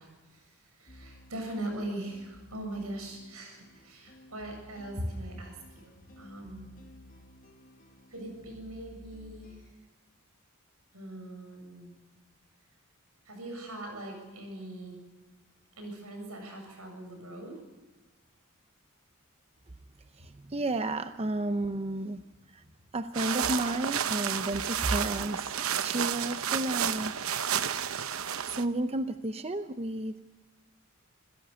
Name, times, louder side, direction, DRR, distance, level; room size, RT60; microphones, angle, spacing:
voice 1, 0.0-6.7 8.1-9.7 10.9-12.0 13.3-15.0 15.8-17.6, right 1 dB, 90° right, 3 dB, 7.6 m, -41 dB
sound 1, 0.9-9.7, equal, 40° left, 2.0 m, -54 dB
voice 2, 20.2-22.2 22.5-22.6 22.9-25.5 25.8-27.6 28.5-30.2, right 2 dB, 30° right, 9 dB, 0.7 m, -32 dB
sound 2, 23.1-28.7, right 8 dB, 70° right, 0.9 m, -31 dB
26.5 x 16.0 x 7.0 m, 1.2 s
head